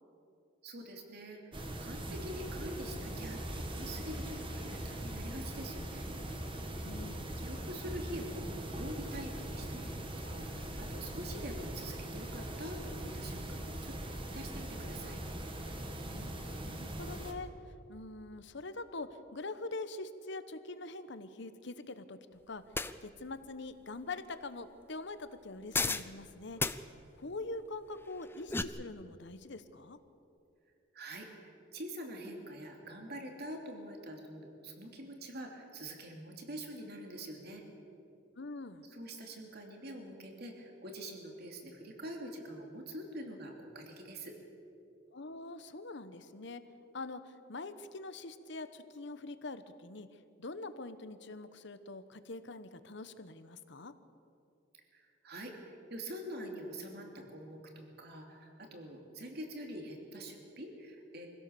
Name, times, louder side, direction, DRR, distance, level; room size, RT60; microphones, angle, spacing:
voice 1, 0.6-6.1 7.4-15.2 30.9-37.6 38.9-44.3 54.9-55.5 55.9-61.3, right 1 dB, 55° right, 2 dB, 2.8 m, -45 dB
sound 1, 1.5-17.3, right 1 dB, 25° right, 1.6 m, -41 dB
voice 2, 6.8-7.4 16.1-16.3 16.6-17.5 17.9-22.6 23.0-26.6 27.2-30.0 38.4-38.9 45.1-46.6 46.9-53.9, left 3 dB, 65° left, 11 dB, 1.1 m, -44 dB
sound 2, 22.7-22.9 25.7-26.1 26.6-26.8 28.2-28.6, left 3 dB, 10° left, 0.6 m, -32 dB
24.0 x 16.5 x 7.1 m, 2.7 s
head